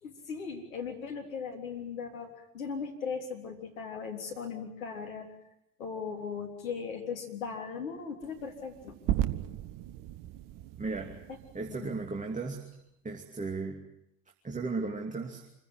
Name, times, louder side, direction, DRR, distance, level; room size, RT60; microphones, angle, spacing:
voice 1, 0.0-5.3 5.8-9.0 11.7-11.9, left 6 dB, 75° left, 2 dB, 3.6 m, -38 dB
sound 1, 8.2-12.6, right 12 dB, 55° right, 1.2 m, -36 dB
voice 2, 10.8-11.2 11.5-12.6 13.0-13.8 14.4-15.4, right 3 dB, 20° right, 2 dB, 2.8 m, -35 dB
26.5 x 16.0 x 9.6 m, 0.79 s
figure-of-eight pair, 60°, 41 cm